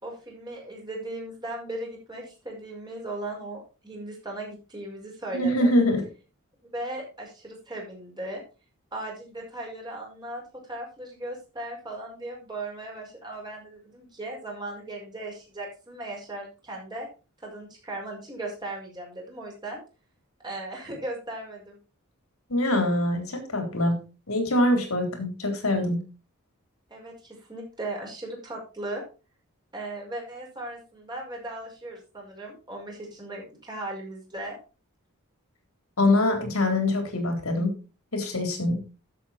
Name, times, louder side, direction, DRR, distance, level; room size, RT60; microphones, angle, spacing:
voice 1, 0.0-5.7 6.7-8.4 8.9-17.1 17.4-19.8 20.4-21.8 26.9-29.0 29.7-34.6, right 1 dB, 20° right, -1 dB, 5.2 m, -37 dB
voice 2, 5.3-6.0 22.5-24.0 24.3-26.0 36.0-37.7 38.1-38.8, left 1 dB, 80° left, 5 dB, 3.8 m, -24 dB
12.5 x 7.8 x 4.3 m, 0.33 s
head